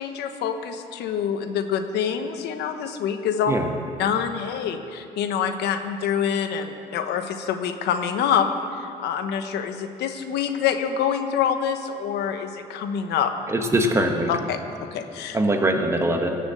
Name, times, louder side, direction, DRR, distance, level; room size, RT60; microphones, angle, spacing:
voice 1, 0.0-3.5 4.0-8.5 8.7-13.3 14.3-14.6 14.9-15.4, left 8 dB, 80° left, 7 dB, 1.1 m, -26 dB
voice 2, 13.5-14.3 15.3-16.4, right 1 dB, 15° right, 3 dB, 1.5 m, -22 dB
17.5 x 6.9 x 7.8 m, 2.6 s
cardioid pair, 110°, 17 cm